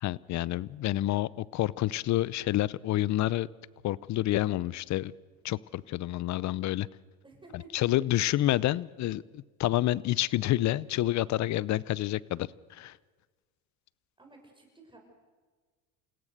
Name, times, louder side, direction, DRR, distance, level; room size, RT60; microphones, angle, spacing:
voice 1, 0.0-3.5 3.8-5.1 5.4-6.9 7.5-13.0, left 15 dB, 45° left, 22 dB, 0.7 m, -29 dB
voice 2, 7.2-8.0 14.2-15.0, right 2 dB, 10° right, 2 dB, 6.3 m, -53 dB
29.0 x 17.0 x 6.6 m, 1.4 s
supercardioid pair, 100°, 41 cm